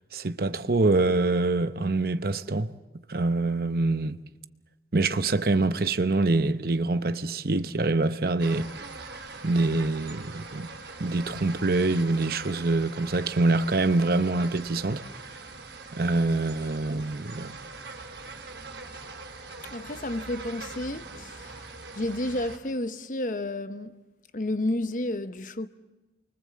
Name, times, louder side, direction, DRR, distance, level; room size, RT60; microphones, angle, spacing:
voice 1, 0.1-2.7 3.1-4.2 4.9-8.7 9.4-10.7 11.0-15.0 15.9-17.6, right 2 dB, 55° right, 0.8 m, -25 dB
sound 1, 8.4-22.6, right 3 dB, 80° right, 3.6 m, -42 dB
voice 2, 19.6-21.7 21.9-24.0 24.3-25.7, left 1 dB, 50° left, 1.0 m, -31 dB
29.5 x 23.5 x 7.6 m
head